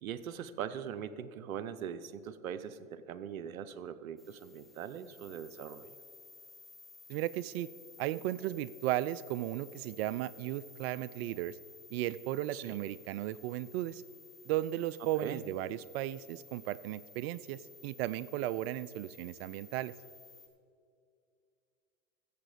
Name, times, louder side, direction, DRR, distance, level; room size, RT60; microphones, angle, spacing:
voice 1, 0.0-5.9 12.5-12.7 15.2-15.4, right 8 dB, 80° right, 13 dB, 0.8 m, -41 dB
sound 1, 4.2-20.5, left 3 dB, ahead, 1.4 m, -56 dB
voice 2, 7.1-7.7 8.0-11.6 11.9-14.0 14.5-19.9, right 14 dB, 50° right, 18 dB, 0.4 m, -35 dB
14.0 x 7.6 x 4.9 m, 2.4 s
hypercardioid pair, 105°, 41 cm